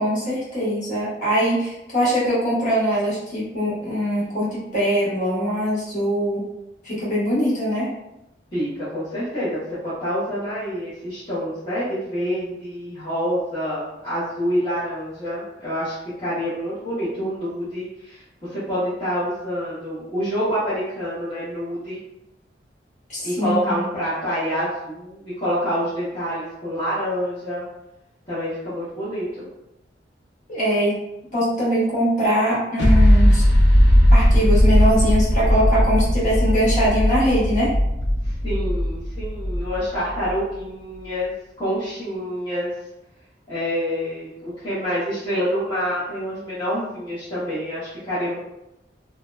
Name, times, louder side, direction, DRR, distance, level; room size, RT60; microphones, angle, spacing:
voice 1, 0.0-6.5 6.8-7.9 23.1-23.8 30.5-31.0 31.3-33.4 34.1-37.7, equal, 45° left, -8 dB, 1.1 m, -22 dB
voice 2, 8.5-22.0 23.2-27.6 28.3-29.5 38.2-41.3 41.6-42.7 43.5-48.4, equal, 25° left, -13 dB, 0.8 m, -27 dB
sound 1, 32.8-40.3, equal, 70° left, 0.5 m, -17 dB
2.7 x 2.1 x 2.2 m, 0.89 s
head